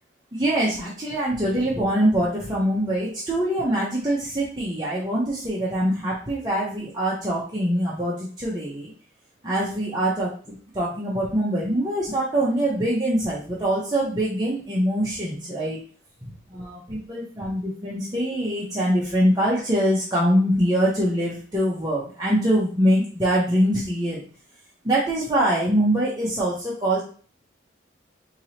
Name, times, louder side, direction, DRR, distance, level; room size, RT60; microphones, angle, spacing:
voice 1, 0.3-8.9 9.4-10.3 10.7-15.8 16.5-24.2 24.8-27.0, right 1 dB, 20° right, -7 dB, 0.8 m, -23 dB
4.7 x 2.8 x 2.9 m, 0.42 s
head